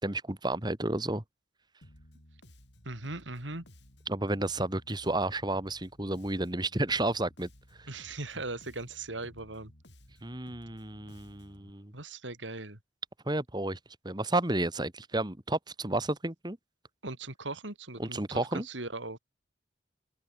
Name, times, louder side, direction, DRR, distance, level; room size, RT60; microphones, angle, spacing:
voice 1, 0.0-1.2 4.1-7.5 10.2-11.9 13.3-13.8 14.0-16.6 18.0-18.7, right 2 dB, 25° right, 1.9 m, -31 dB
Bass guitar, 1.8-11.7, left 1 dB, 70° left, 6.8 m, -57 dB
voice 2, 2.8-3.6 7.9-9.7 11.9-12.8 17.0-19.2, right 2 dB, 85° right, 4.3 m, -39 dB
open air
head